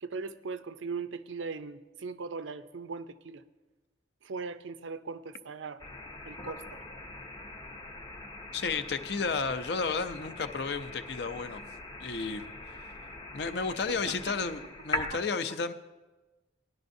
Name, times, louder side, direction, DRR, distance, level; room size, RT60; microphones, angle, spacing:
voice 1, 0.0-3.4 4.2-5.8 6.3-6.8 13.3-13.4 14.1-14.4 15.1-15.2, right 4 dB, 85° right, 12 dB, 0.5 m, -39 dB
sound 1, 5.8-15.1, left 1 dB, 20° left, 0.7 m, -41 dB
voice 2, 8.5-11.6 12.0-12.4 13.3-15.7, left 4 dB, 60° left, 11 dB, 0.6 m, -32 dB
18.0 x 11.0 x 2.6 m, 1.2 s
head